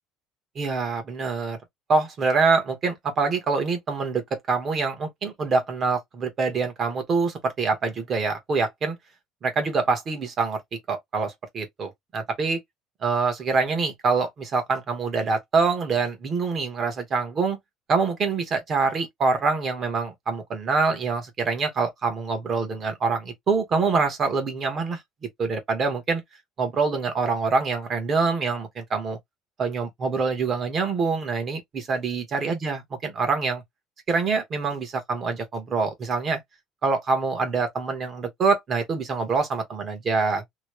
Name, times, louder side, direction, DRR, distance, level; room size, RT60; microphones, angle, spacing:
voice 1, 0.5-1.6 1.9-9.0 9.4-10.6 10.9-12.6 13.0-17.6 17.9-25.0 25.4-26.2 26.6-29.2 29.6-33.6 34.1-36.4 36.8-40.4, right 4 dB, 30° right, 1.2 m, -25 dB
3.0 x 2.8 x 3.0 m
cardioid pair, 175°, 0 cm